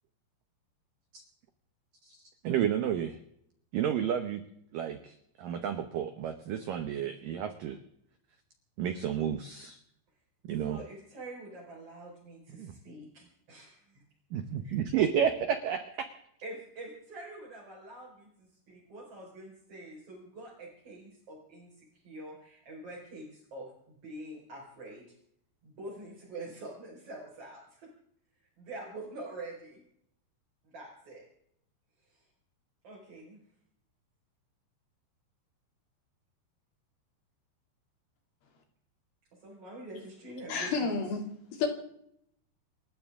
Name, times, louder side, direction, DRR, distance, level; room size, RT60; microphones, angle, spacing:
voice 1, 2.4-3.2 3.7-4.4 4.7-7.8 8.8-9.8 10.4-10.8 12.5-12.7 14.3-16.1, right 9 dB, 80° right, 8 dB, 1.9 m, -31 dB
voice 2, 10.7-13.7 16.4-25.1 25.6-27.9 28.6-29.8 30.6-31.2 32.1-32.2 32.8-33.4 39.4-41.0, right 2 dB, 30° right, -3 dB, 5.6 m, -45 dB
voice 3, 40.5-41.7, left 4 dB, 55° left, 2 dB, 4.4 m, -31 dB
28.0 x 14.0 x 3.7 m, 0.72 s
omnidirectional pair, 5.4 m